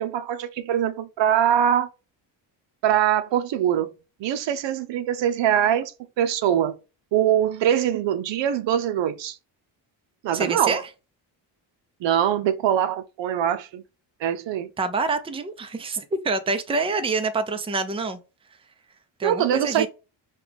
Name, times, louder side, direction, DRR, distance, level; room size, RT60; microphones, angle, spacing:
voice 1, 0.0-1.9 2.8-3.9 4.2-5.9 6.2-6.7 7.1-9.4 10.2-10.8 12.0-13.8 14.2-14.7 19.2-19.9, right 10 dB, 70° right, 0.7 m, -23 dB
voice 2, 10.3-10.8 14.8-18.2 19.2-19.9, right 3 dB, 10° right, 0.5 m, -26 dB
5.3 x 2.4 x 3.5 m
cardioid pair, 105°, 45 cm